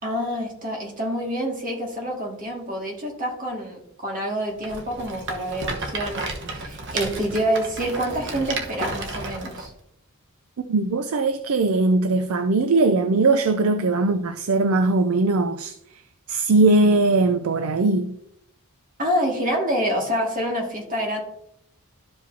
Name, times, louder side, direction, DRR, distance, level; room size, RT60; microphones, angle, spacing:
voice 1, 0.0-6.2 6.5-9.7 19.0-21.2, equal, 40° right, 1.9 m, -27 dB
Rattle, 4.6-9.7, right 2 dB, 55° right, 1.1 m, -32 dB
voice 2, 10.6-16.0 16.3-18.2, right 3 dB, 70° right, 0.5 m, -20 dB
12.5 x 5.0 x 2.7 m
head